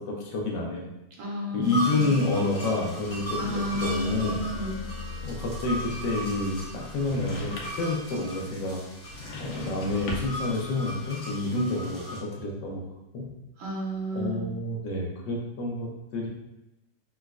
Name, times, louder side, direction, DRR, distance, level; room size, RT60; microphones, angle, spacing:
voice 1, 0.1-0.9 1.5-4.4 5.2-8.8 9.4-12.8 13.1-13.2 14.1-16.3, left 2 dB, 70° left, -1 dB, 1.2 m, -29 dB
voice 2, 1.2-2.2 3.4-4.7 13.6-14.4, equal, 85° right, -2 dB, 1.5 m, -32 dB
sound 1, 1.6-12.2, equal, 50° left, 0.5 m, -38 dB
sound 2, 2.7-9.4, left 3 dB, 20° left, 0.9 m, -42 dB
sound 3, 7.0-8.0 9.0-10.5, left 1 dB, 85° left, 1.4 m, -37 dB
4.0 x 2.1 x 2.3 m, 0.93 s
omnidirectional pair, 2.1 m